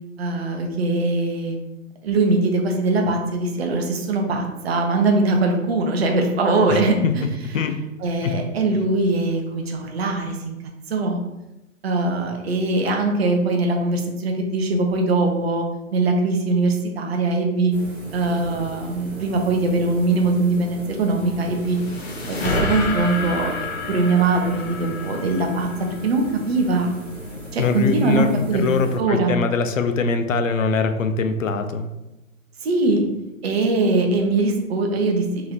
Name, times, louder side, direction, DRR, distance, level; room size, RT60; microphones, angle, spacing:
voice 1, 0.2-1.6 2.0-7.2 8.0-10.6 10.9-11.2 11.8-15.6 15.9-17.7 18.1-21.8 22.3-25.7 26.0-26.9 27.5-28.6 29.0-29.3 32.6-33.0 33.4-35.3, right 3 dB, 50° right, 2 dB, 0.8 m, -21 dB
voice 2, 6.7-7.1 7.5-7.8 8.2-8.3 27.6-31.9, left 4 dB, 70° left, 8 dB, 0.5 m, -22 dB
sound 1, 17.7-29.3, equal, 20° right, 1.3 m, -37 dB
sound 2, 21.2-26.6, left 2 dB, 50° left, 1.2 m, -29 dB
3.7 x 2.9 x 3.0 m, 0.97 s
figure-of-eight pair, 120°, 41 cm